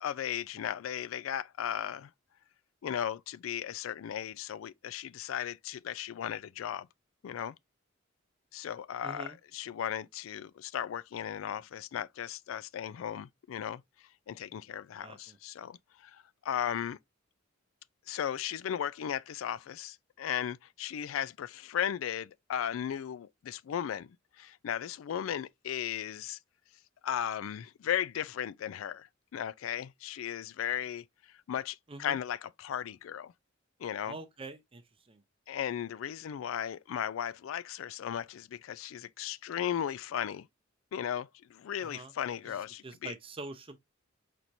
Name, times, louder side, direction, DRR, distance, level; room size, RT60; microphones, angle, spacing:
voice 1, 0.0-2.1 2.8-6.9 7.2-7.5 8.5-13.8 14.3-17.0 18.1-26.4 27.0-31.0 31.5-33.3 33.8-34.2 35.5-40.5 40.9-43.1, left 9 dB, 85° left, 0.3 m, -36 dB
voice 2, 9.0-9.4 15.0-15.4 31.9-32.2 34.0-34.8 35.1-35.2 41.8-42.1 42.5-42.6 42.8-43.8, right 2 dB, 25° right, 0.6 m, -44 dB
4.6 x 4.2 x 2.6 m
head